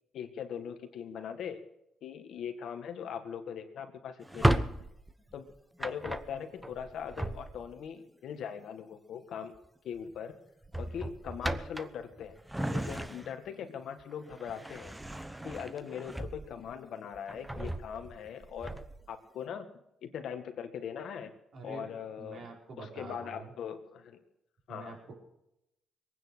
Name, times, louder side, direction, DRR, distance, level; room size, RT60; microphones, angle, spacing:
voice 1, 0.1-1.6 2.0-4.7 5.3-5.5 5.8-9.5 9.8-10.4 10.8-12.4 12.7-15.0 15.4-18.8 19.1-19.7 20.0-21.3 21.6-22.5 22.8-24.2 24.7-25.0, left 8 dB, 70° left, 6 dB, 2.0 m, -41 dB
Drawer open or close, 4.2-7.9 9.3-9.7 10.0-10.2 10.6-13.5 14.0-16.7 17.1-19.1, right 1 dB, 10° right, 1.0 m, -35 dB
voice 2, 21.5-23.5 24.7-25.1, right 3 dB, 55° right, 0 dB, 5.2 m, -46 dB
21.5 x 9.5 x 6.4 m, 0.84 s
cardioid pair, 90°, 0 cm